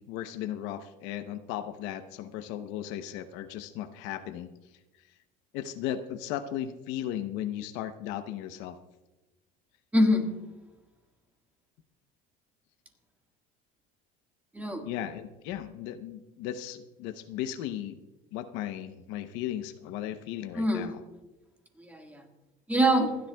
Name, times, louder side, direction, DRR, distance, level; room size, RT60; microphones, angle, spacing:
voice 1, 0.0-4.5 5.5-8.8 14.9-18.0 18.3-21.0, left 11 dB, 75° left, 9 dB, 0.8 m, -36 dB
voice 2, 9.9-10.4 14.5-14.9 20.5-20.9 21.8-22.2 22.7-23.2, equal, 10° right, 3 dB, 1.7 m, -25 dB
27.5 x 10.5 x 2.3 m, 1.1 s
cardioid pair, 135°, 19 cm